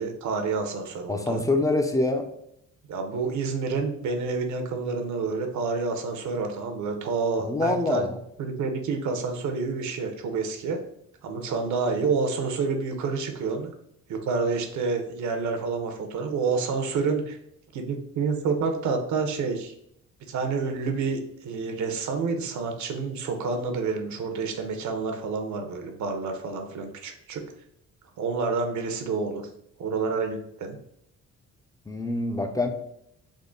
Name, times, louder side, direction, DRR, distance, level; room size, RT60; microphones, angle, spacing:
voice 1, 0.0-1.4 2.9-8.1 8.4-10.8 11.2-13.7 14.1-17.4 17.7-19.7 20.3-27.4 28.2-29.5 29.8-30.8, right 4 dB, 70° right, 5 dB, 0.7 m, -28 dB
voice 2, 1.1-2.2 7.4-8.1 31.9-32.7, left 2 dB, 10° left, 5 dB, 0.5 m, -25 dB
3.6 x 2.1 x 3.7 m, 0.74 s
cardioid pair, 90°, 30 cm